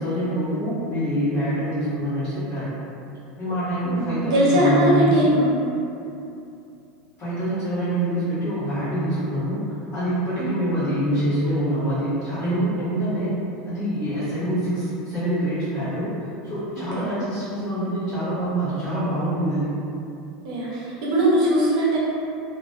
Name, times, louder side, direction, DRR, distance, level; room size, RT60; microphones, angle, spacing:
voice 1, 0.0-2.7 3.4-5.2 7.2-13.3 13.6-16.1 16.4-19.7, right 1 dB, 30° left, -14 dB, 0.9 m, -25 dB
voice 2, 3.8-5.5 10.4-10.6 17.0-17.1 20.4-22.0, equal, 80° right, -6 dB, 0.6 m, -20 dB
2.3 x 2.2 x 2.4 m, 2.7 s
supercardioid pair, 165°, 3 cm